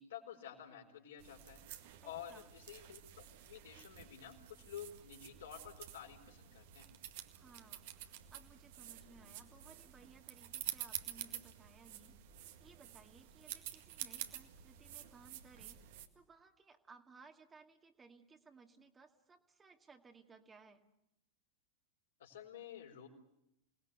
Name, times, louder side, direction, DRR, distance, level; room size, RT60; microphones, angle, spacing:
voice 1, 0.0-1.6 2.0-6.9 22.2-23.1, left 9 dB, 60° left, 2 dB, 4.5 m, -51 dB
sound 1, 1.2-16.1, right 12 dB, 50° right, 2.0 m, -49 dB
voice 2, 2.0-2.5 7.3-12.2 12.6-15.8 16.1-20.8, right 4 dB, 15° right, 4 dB, 2.1 m, -61 dB
28.5 x 20.0 x 8.3 m, 0.84 s
figure-of-eight pair, 90°, 0 cm